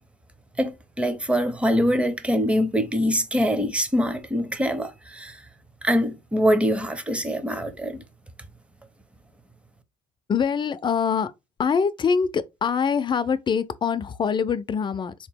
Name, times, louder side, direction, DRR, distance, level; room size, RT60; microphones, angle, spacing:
voice 1, 0.6-5.4 5.8-8.0, equal, 5° right, 0.7 m, -24 dB
voice 2, 10.3-11.3 11.6-15.1, left 6 dB, 30° left, 0.4 m, -24 dB
3.8 x 2.9 x 3.4 m
cardioid pair, 110°, 17 cm